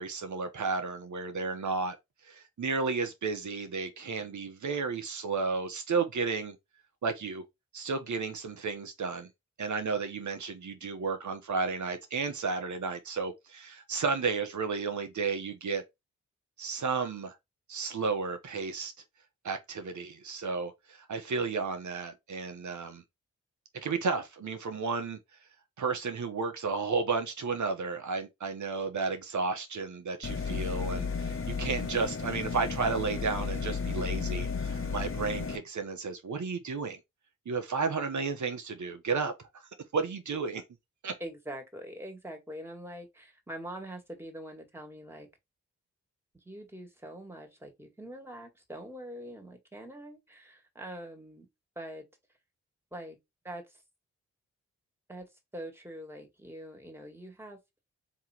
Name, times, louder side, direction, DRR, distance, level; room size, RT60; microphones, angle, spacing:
voice 1, 0.0-1.9 2.2-6.6 7.0-7.4 7.7-9.3 9.6-15.8 16.6-17.3 17.7-18.9 19.4-23.0 23.8-25.2 25.8-37.0 37.4-39.5 39.9-40.6 41.0-41.2, right 4 dB, 65° right, 1.2 m, -32 dB
sound 1, 30.2-35.6, left 5 dB, 40° left, 1.2 m, -33 dB
voice 2, 41.2-45.3 46.3-51.5 51.8-52.1 52.9-53.2 53.4-53.8 55.1-57.6, right 1 dB, 5° right, 2.0 m, -44 dB
3.6 x 3.1 x 4.4 m
supercardioid pair, 40°, 32 cm